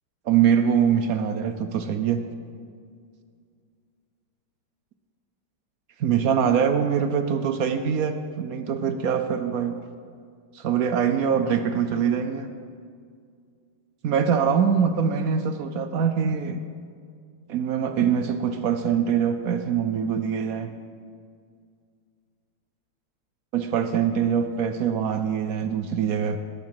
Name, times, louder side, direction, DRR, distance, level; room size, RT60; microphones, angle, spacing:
voice 1, 0.3-2.2 6.0-9.8 10.5-12.5 14.0-16.6 17.5-20.7 23.5-26.4, right 7 dB, 70° right, 9 dB, 0.8 m, -23 dB
19.5 x 7.6 x 5.9 m, 2.2 s
omnidirectional pair, 2.2 m